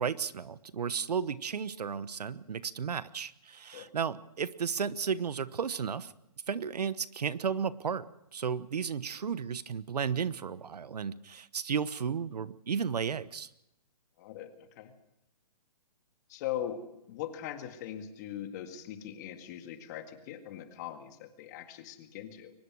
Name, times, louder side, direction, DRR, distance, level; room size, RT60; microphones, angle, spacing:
voice 1, 0.0-6.1 6.5-8.1 8.3-13.5, right 6 dB, 80° right, 16 dB, 1.1 m, -33 dB
voice 2, 14.2-14.9 16.3-22.5, left 10 dB, 25° left, 7 dB, 1.9 m, -40 dB
23.5 x 20.0 x 6.3 m, 0.85 s
hypercardioid pair, 165°, 20 cm